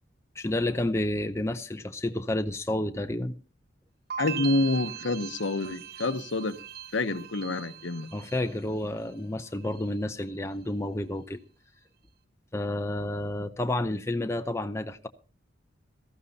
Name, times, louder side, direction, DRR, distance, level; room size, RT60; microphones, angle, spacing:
voice 1, 0.4-3.3 8.1-11.4 12.5-15.1, left 1 dB, 15° left, 0.6 m, -30 dB
sound 1, 4.1-9.1 9.4-10.1, right 10 dB, 50° right, 0.7 m, -40 dB
voice 2, 4.2-6.6 6.9-8.1, left 2 dB, 70° left, 0.9 m, -28 dB
18.5 x 14.0 x 2.8 m
head